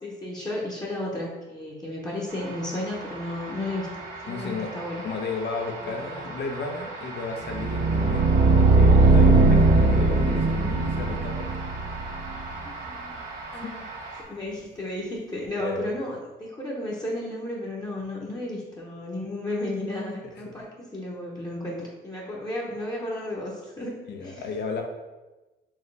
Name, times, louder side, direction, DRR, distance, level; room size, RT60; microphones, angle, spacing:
voice 1, 0.0-5.0 5.8-6.2 12.6-13.8 14.3-23.9 24.2-24.5, left 1 dB, 20° left, -5 dB, 0.9 m, -33 dB
sound 1, 2.3-14.2, right 3 dB, 85° right, 1.4 m, -39 dB
voice 2, 4.3-4.7 5.0-11.5 13.5-13.7 15.6-15.8 24.1-24.8, left 4 dB, 60° left, 3 dB, 0.8 m, -33 dB
sound 2, 7.5-12.5, right 3 dB, 30° right, 0.4 m, -19 dB
4.6 x 2.9 x 3.3 m, 1.1 s
cardioid pair, 90°, 20 cm